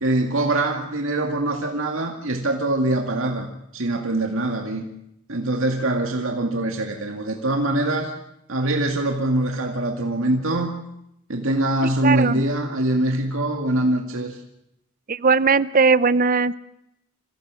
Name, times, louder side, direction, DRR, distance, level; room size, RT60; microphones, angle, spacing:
voice 1, 0.0-4.8 5.3-8.1 8.5-10.7 11.3-14.4, right 1 dB, 70° right, 2 dB, 2.2 m, -23 dB
voice 2, 12.0-12.4 15.1-16.6, right 4 dB, 40° right, 16 dB, 0.7 m, -18 dB
27.5 x 16.0 x 7.6 m, 0.82 s
head